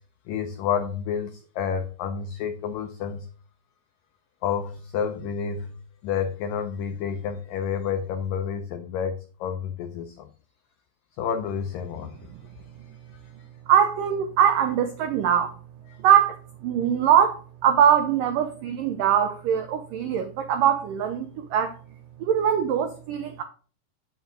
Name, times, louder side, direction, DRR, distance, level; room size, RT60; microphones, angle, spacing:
voice 1, 0.3-3.3 4.4-5.8 6.0-10.3 11.2-12.3 13.1-13.2 15.9-16.0, left 7 dB, 85° left, 1.9 m, -30 dB
voice 2, 13.7-15.5 16.0-16.4 16.6-21.8 22.2-23.4, right 9 dB, 85° right, 1.9 m, -22 dB
8.6 x 7.0 x 3.8 m
omnidirectional pair, 4.9 m